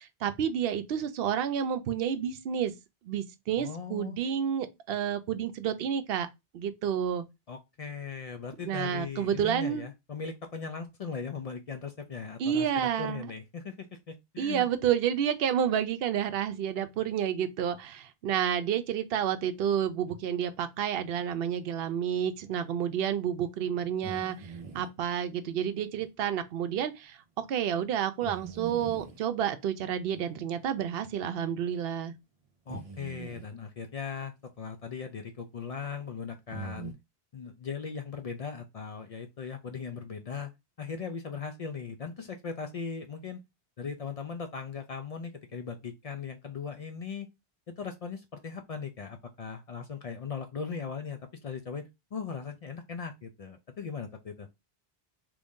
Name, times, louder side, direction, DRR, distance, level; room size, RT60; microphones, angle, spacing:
voice 1, 0.0-2.7 3.0-6.3 6.5-7.2 8.7-9.9 12.4-13.3 14.4-32.1, right 9 dB, 70° right, 0.8 m, -30 dB
voice 2, 3.6-4.2 7.5-14.7 32.7-36.9 37.3-40.5 40.8-43.4 43.8-47.3 47.7-54.5, left 6 dB, 55° left, 0.4 m, -39 dB
sound 1, 24.0-24.9 26.0-26.1 26.7-26.9 28.2-29.2 30.1-30.3 31.4-31.5 32.7-33.5 36.5-36.9, right 4 dB, 40° right, 0.7 m, -42 dB
3.0 x 2.6 x 3.5 m
omnidirectional pair, 1.0 m